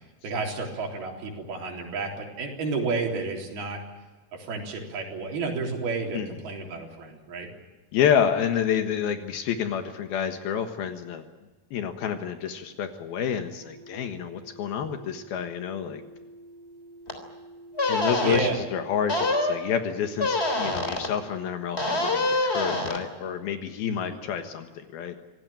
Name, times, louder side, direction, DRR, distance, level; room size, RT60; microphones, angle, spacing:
voice 1, 0.2-3.8 4.3-7.5 17.9-18.6 23.8-24.2, right 4 dB, 75° right, 1 dB, 5.7 m, -31 dB
voice 2, 7.9-11.2 11.7-16.0 17.9-25.1, left 8 dB, 75° left, 7 dB, 3.3 m, -28 dB
sound 1, 13.6-21.9, right 1 dB, 35° right, 6.1 m, -48 dB
sound 2, 17.1-17.2 17.8-18.4 19.1-19.6 20.2-21.1 21.8-23.0, left 2 dB, 15° left, 3.2 m, -25 dB
26.0 x 18.0 x 9.0 m, 1.2 s
omnidirectional pair, 4.5 m